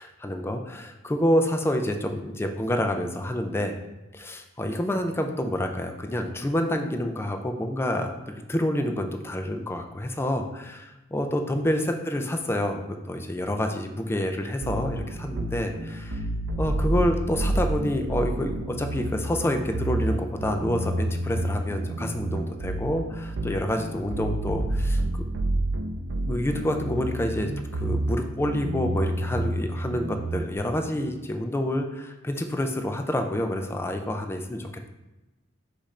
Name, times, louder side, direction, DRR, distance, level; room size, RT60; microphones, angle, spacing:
voice 1, 0.0-3.8 4.1-16.2 16.6-25.3 26.3-34.9, left 1 dB, 10° left, 5 dB, 0.3 m, -28 dB
sound 1, 14.6-30.6, right 1 dB, 60° right, 0.4 m, -29 dB
5.1 x 2.5 x 4.1 m, 1.0 s
head